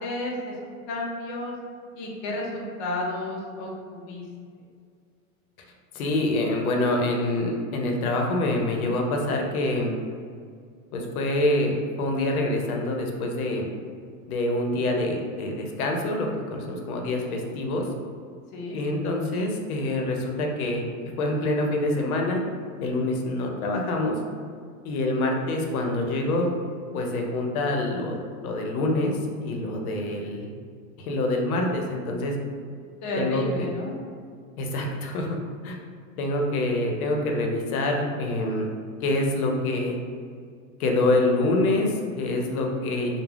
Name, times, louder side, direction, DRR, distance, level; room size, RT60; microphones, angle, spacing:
voice 1, 0.0-0.6 0.9-1.5 1.9-4.2 18.5-18.8 33.0-33.9, left 1 dB, 35° left, -3 dB, 0.4 m, -32 dB
voice 2, 5.9-9.9 10.9-13.7 14.3-17.9 18.7-20.8 21.2-22.4 22.8-24.2 24.8-26.5 26.9-29.1 29.4-30.5 31.0-32.3 33.2-33.7 34.6-35.4 35.6-35.8 36.2-38.7 39.0-40.0 40.8-43.2, left 2 dB, 85° left, 1 dB, 0.6 m, -26 dB
3.3 x 2.0 x 2.3 m, 2.1 s
supercardioid pair, 150°, 43 cm